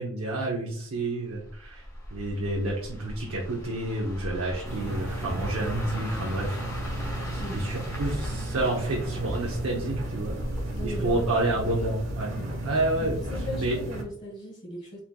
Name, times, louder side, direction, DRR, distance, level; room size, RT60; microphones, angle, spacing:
voice 1, 0.0-1.9 2.1-6.6 7.0-10.4 10.8-12.3 12.6-13.1 13.6-13.8, right 2 dB, 90° right, -2 dB, 0.8 m, -29 dB
sound 1, 1.3-12.4 12.7-13.0, equal, 15° left, 1.1 m, -39 dB
sound 2, 4.7-14.0, right 1 dB, 65° right, 1.2 m, -34 dB
voice 2, 10.7-11.3 11.6-11.7 12.4-12.5 13.0-15.0, left 1 dB, 35° left, -6 dB, 1.5 m, -38 dB
4.4 x 3.7 x 2.2 m, 0.62 s
head